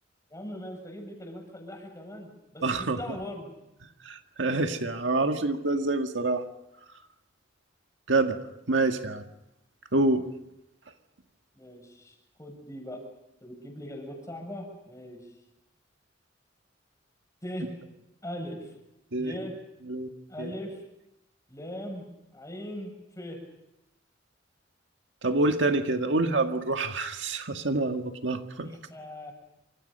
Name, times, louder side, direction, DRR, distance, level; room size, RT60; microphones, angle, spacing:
voice 1, 0.3-3.5 11.6-13.0 13.4-15.2 17.4-17.7 18.2-18.7 19.2-19.6 20.3-20.8 21.5-22.1 22.3-23.4 28.6-29.3, left 1 dB, 15° left, 3 dB, 7.2 m, -40 dB
voice 2, 2.6-3.0 4.1-6.4 8.1-8.4 8.7-9.2 9.9-10.2 19.1-19.3 19.9-20.1 20.4-20.5 25.2-28.7, right 2 dB, 70° right, 5 dB, 1.8 m, -26 dB
28.5 x 26.5 x 5.5 m, 0.88 s
head